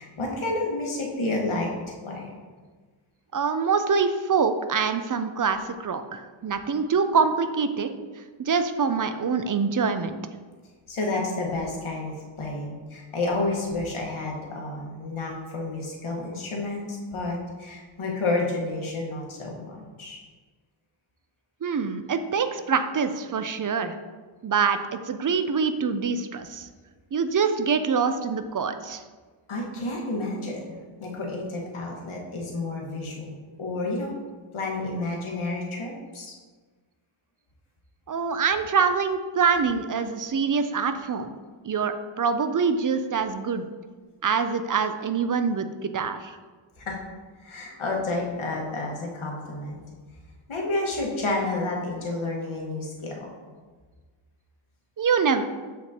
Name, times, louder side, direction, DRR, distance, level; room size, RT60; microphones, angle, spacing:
voice 1, 0.0-2.3 10.9-20.2 29.5-34.1 34.5-36.3 46.8-47.0 47.4-49.8 50.5-53.3, left 2 dB, 75° left, -1 dB, 1.5 m, -30 dB
voice 2, 3.3-7.9 8.5-10.2 21.6-23.9 24.4-26.7 27.1-29.0 38.1-41.3 41.6-43.7 44.2-46.4 55.0-55.4, right 5 dB, 40° right, 9 dB, 0.5 m, -25 dB
7.1 x 5.9 x 2.8 m, 1.4 s
wide cardioid pair, 85°, 49 cm